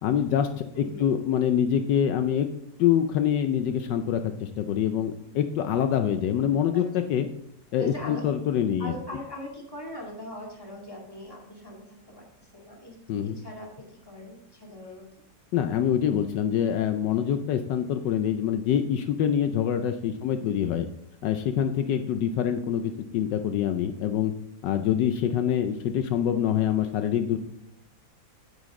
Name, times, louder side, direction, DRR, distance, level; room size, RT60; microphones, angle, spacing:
voice 1, 0.0-2.5 2.8-7.3 7.7-8.9 13.1-13.4 15.5-20.9 21.2-24.3 24.6-27.4, left 9 dB, 80° left, 8 dB, 1.2 m, -25 dB
voice 2, 0.7-1.1 6.7-6.8 7.8-8.2 8.8-13.0 13.2-15.1 20.2-20.6, left 1 dB, 10° left, -2 dB, 2.2 m, -41 dB
9.3 x 8.2 x 3.7 m, 0.75 s
omnidirectional pair, 1.9 m